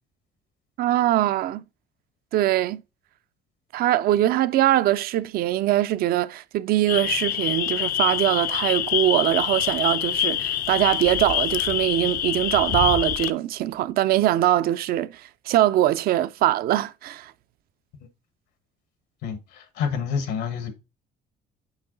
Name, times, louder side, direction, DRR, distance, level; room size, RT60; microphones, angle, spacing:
voice 1, 0.8-1.6 2.3-2.8 3.7-17.3, right 13 dB, 65° right, 0.4 m, -22 dB
sound 1, 6.9-13.3, left 12 dB, 60° left, 0.5 m, -26 dB
voice 2, 19.2-20.7, left 6 dB, 85° left, 1.5 m, -28 dB
5.9 x 4.6 x 3.8 m
cardioid pair, 110°, 17 cm